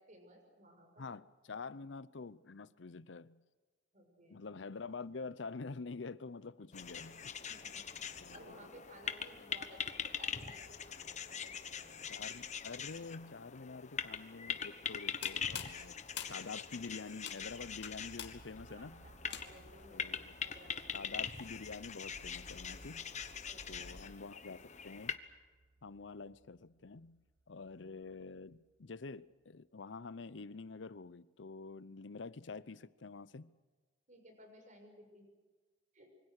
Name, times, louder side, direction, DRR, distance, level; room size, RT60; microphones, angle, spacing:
voice 1, 0.0-1.1 3.9-4.4 7.5-8.0 8.3-12.2 18.7-21.2 23.5-24.0 34.1-35.2 35.9-36.1, equal, 45° right, 6.2 m, -58 dB
voice 2, 1.0-3.4 4.3-7.3 8.2-8.8 12.1-19.1 19.9-20.3 20.9-23.1 23.7-25.1 25.8-27.2 27.5-33.5, left 4 dB, 80° left, 0.7 m, -47 dB
sound 1, 6.7-25.2, left 7 dB, 40° left, 1.2 m, -43 dB
sound 2, 15.1-19.8, left 8 dB, 65° left, 2.5 m, -48 dB
sound 3, 17.3-29.1, right 2 dB, 75° right, 1.2 m, -63 dB
26.5 x 24.0 x 6.6 m
head